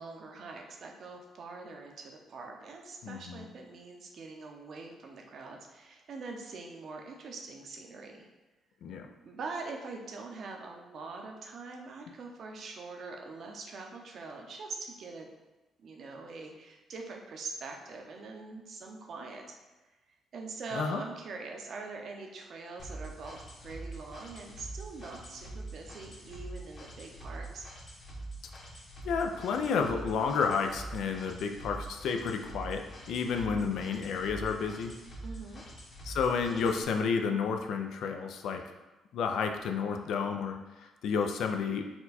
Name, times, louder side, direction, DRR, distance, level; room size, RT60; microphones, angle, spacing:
voice 1, 0.0-8.3 9.2-15.3 15.8-19.6 20.3-27.7 35.2-35.6, right 3 dB, 60° right, 2 dB, 0.7 m, -43 dB
voice 2, 3.0-3.5 8.8-9.1 20.7-21.0 29.0-34.9 36.0-38.6 39.1-41.8, left 5 dB, 75° left, 4 dB, 0.4 m, -31 dB
sound 1, 22.8-36.8, right 2 dB, 45° left, 1.1 m, -45 dB
4.3 x 2.3 x 4.1 m, 1.1 s
cardioid pair, 90°, 0 cm